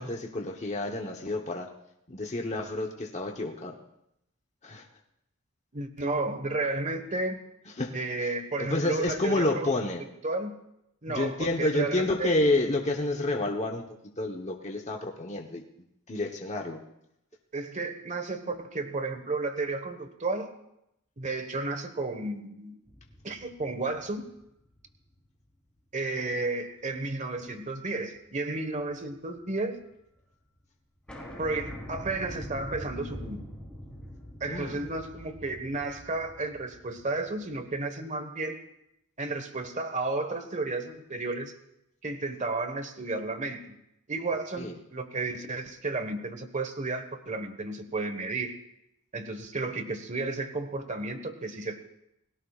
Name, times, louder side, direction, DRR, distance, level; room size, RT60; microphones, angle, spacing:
voice 1, 0.0-1.7 2.1-3.8 4.6-4.9 7.8-7.9 8.2-8.3 8.6-10.0 11.1-13.8 14.2-15.6 16.1-16.8 34.5-34.9 44.6-44.7, left 2 dB, 30° left, 2 dB, 1.1 m, -29 dB
voice 2, 5.7-7.4 7.9-9.7 10.2-10.5 11.0-12.4 17.5-20.5 21.2-22.7 23.2-24.2 25.9-29.8 31.4-33.4 34.4-38.6 39.2-41.5 42.0-43.7 44.1-48.6 49.1-51.8, right 3 dB, 35° right, 8 dB, 1.4 m, -32 dB
sound 1, 22.9-25.5 25.9-26.0 27.5-27.9 28.1-29.6 29.9-30.0 30.2-30.3 30.6-30.7 31.1-37.8, equal, 5° left, 3.5 m, -44 dB
30.0 x 17.0 x 2.5 m, 0.81 s
head